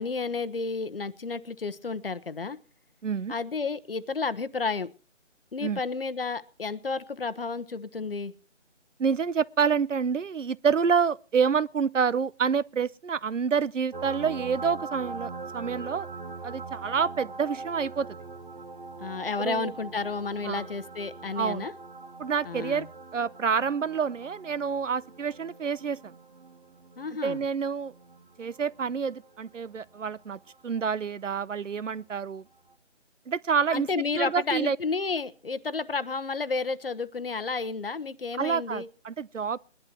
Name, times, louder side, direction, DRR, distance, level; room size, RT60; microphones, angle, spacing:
voice 1, 0.0-2.6 3.3-4.9 5.5-8.3 19.0-21.7 22.4-22.9 27.0-27.4 33.7-38.9, left 4 dB, 50° left, 1.0 m, -31 dB
voice 2, 3.0-3.3 5.6-5.8 9.0-16.1 16.4-18.1 19.4-19.7 20.4-20.6 21.4-21.7 22.2-22.9 23.1-26.1 27.2-27.9 28.4-32.4 33.3-34.8 38.4-39.6, right 6 dB, 75° right, 0.8 m, -28 dB
sound 1, 13.9-31.1 32.7-32.8, right 3 dB, 45° right, 1.4 m, -42 dB
22.0 x 11.0 x 3.0 m
figure-of-eight pair, 165°, 37 cm